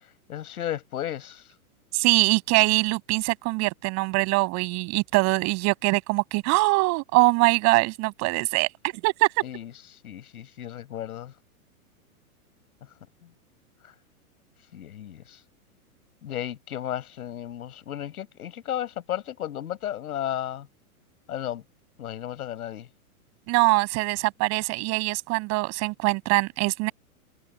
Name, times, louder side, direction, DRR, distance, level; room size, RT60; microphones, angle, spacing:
voice 1, 0.3-1.4 9.4-9.7 10.0-11.3 14.7-15.4 16.2-20.7 21.3-21.6 22.0-22.9, left 11 dB, 80° left, 6.6 m, -34 dB
voice 2, 1.9-9.3 23.5-26.9, right 25 dB, 35° right, 7.1 m, -23 dB
hypercardioid pair, 145°, 43 cm